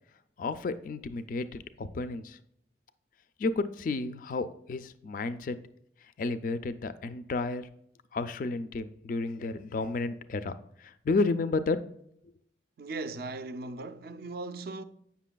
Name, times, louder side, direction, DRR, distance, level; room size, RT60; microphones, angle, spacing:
voice 1, 0.4-2.4 3.4-5.6 6.2-7.7 8.1-11.8, left 3 dB, 45° left, 0.3 m, -32 dB
voice 2, 12.8-14.8, right 3 dB, 55° right, 0.4 m, -38 dB
8.3 x 5.8 x 2.2 m
head